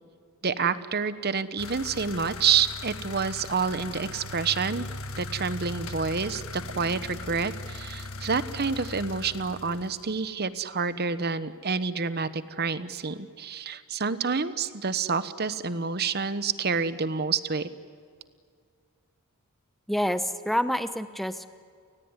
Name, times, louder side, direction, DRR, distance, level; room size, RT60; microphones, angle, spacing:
voice 1, 0.4-4.9 5.2-17.7, right 5 dB, 45° right, 13 dB, 1.0 m, -28 dB
sound 1, 1.6-10.2, left 2 dB, 70° left, 1.6 m, -39 dB
voice 2, 19.9-21.5, equal, ahead, 11 dB, 0.9 m, -27 dB
29.5 x 19.0 x 9.7 m, 2.2 s
head